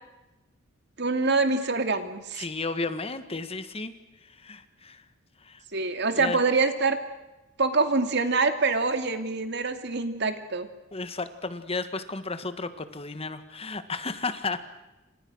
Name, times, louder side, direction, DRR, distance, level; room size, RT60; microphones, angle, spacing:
voice 1, 1.0-2.4 5.7-7.0 7.6-10.7, right 3 dB, 60° right, 8 dB, 2.7 m, -25 dB
voice 2, 2.4-3.9 4.2-5.0 5.4-5.6 6.1-6.4 10.9-14.6, left 3 dB, 30° left, 11 dB, 1.7 m, -33 dB
29.0 x 26.0 x 6.4 m, 1.0 s
head